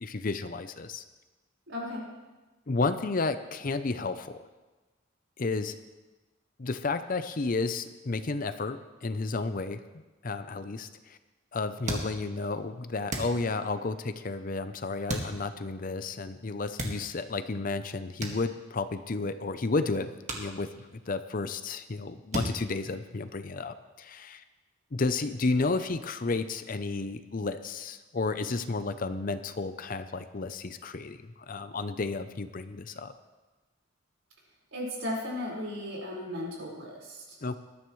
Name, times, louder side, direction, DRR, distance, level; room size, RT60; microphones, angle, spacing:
voice 1, 0.0-1.0 2.7-4.4 5.4-5.7 6.6-9.8 10.2-11.2 11.5-24.4 24.9-33.1 37.4-37.5, left 3 dB, 40° left, 10 dB, 0.6 m, -32 dB
voice 2, 1.7-2.0 34.7-37.2, left 1 dB, 65° right, -3 dB, 4.9 m, -35 dB
sound 1, 11.9-12.6 13.1-13.9 15.1-15.8 16.6-17.4 18.2-19.0 19.4-19.5 20.2-21.2 21.5-21.9 22.3-23.5, right 1 dB, 35° right, 1.8 m, -36 dB
20.0 x 12.5 x 3.2 m, 1.2 s
head